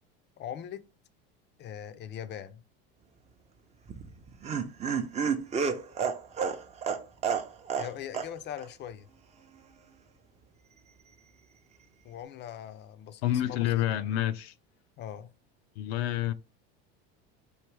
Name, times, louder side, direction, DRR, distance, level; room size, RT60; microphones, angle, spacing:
voice 1, 0.4-0.8 1.6-2.6 7.8-9.1 12.0-13.7 13.9-14.1 15.0-15.3, left 10 dB, 35° left, 0.5 m, -41 dB
Laughter, 3.9-8.3 8.6-8.7, right 6 dB, 20° right, 0.5 m, -30 dB
voice 2, 13.2-14.5 15.8-16.3, left 13 dB, 85° left, 0.5 m, -28 dB
4.7 x 2.6 x 3.2 m
supercardioid pair, 115°, 31 cm